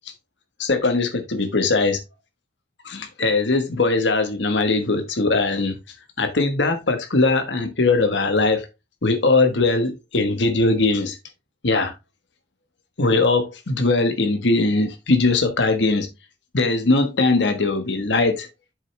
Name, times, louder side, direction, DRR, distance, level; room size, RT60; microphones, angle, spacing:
voice 1, 0.6-2.0 2.8-5.8 6.2-8.7 9.0-11.2 11.6-11.9 13.0-16.1 16.5-18.5, left 3 dB, 85° left, 1.2 m, -20 dB
7.6 x 6.3 x 3.2 m
head